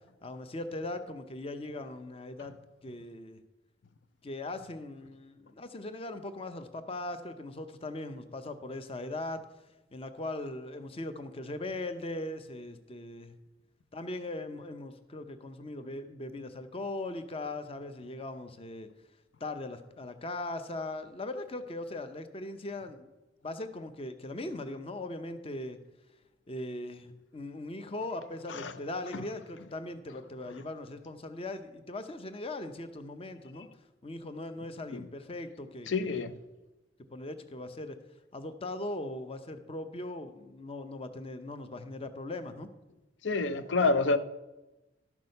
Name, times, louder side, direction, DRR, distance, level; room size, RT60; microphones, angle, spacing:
voice 1, 0.2-2.5 2.8-3.4 4.2-9.4 9.9-13.3 13.9-18.9 19.4-23.1 23.4-25.8 26.5-33.7 34.0-36.3 37.1-38.0 38.3-42.7, left 2 dB, 30° left, 0.7 m, -39 dB
voice 2, 35.9-36.4 43.2-44.2, left 3 dB, 75° left, 0.6 m, -28 dB
12.5 x 6.1 x 5.4 m
head